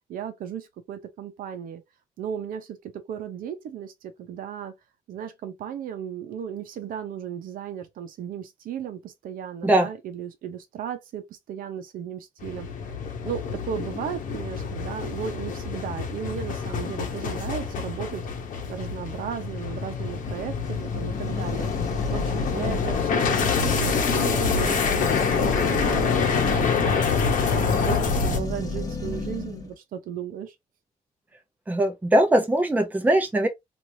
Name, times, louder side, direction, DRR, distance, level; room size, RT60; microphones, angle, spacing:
voice 1, 0.1-1.8 2.2-4.7 5.1-12.7 13.2-18.2 18.7-21.7 22.1-27.1 27.5-30.5, right 8 dB, 85° right, 0.7 m, -35 dB
sound 1, 12.4-28.4, left 5 dB, 65° left, 0.8 m, -26 dB
sound 2, 20.3-29.7, left 2 dB, 25° left, 0.8 m, -35 dB
voice 2, 31.7-33.5, right 1 dB, 10° right, 0.7 m, -21 dB
3.1 x 2.6 x 2.6 m
cardioid pair, 140°, 14 cm